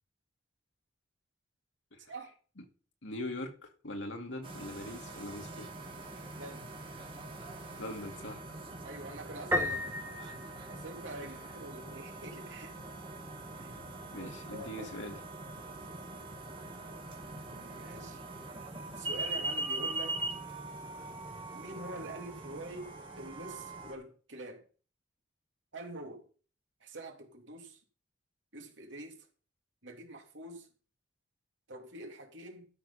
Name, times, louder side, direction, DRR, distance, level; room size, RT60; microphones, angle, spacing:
voice 1, 3.0-5.7 7.8-8.6 14.1-15.2, left 1 dB, 90° left, 2.4 m, -42 dB
sound 1, 4.4-23.9, right 2 dB, 30° right, 2.1 m, -42 dB
voice 2, 8.8-10.3 10.7-12.7 13.6-13.7 14.1-15.1 17.5-18.2 19.0-20.2 21.5-22.9 23.2-24.6 25.7-26.2 26.8-27.8 28.5-29.2 29.8-30.7 31.7-32.7, right 1 dB, 85° right, 3.0 m, -45 dB
Piano, 9.5-11.3, left 1 dB, 10° right, 1.6 m, -34 dB
13.0 x 6.6 x 5.7 m
head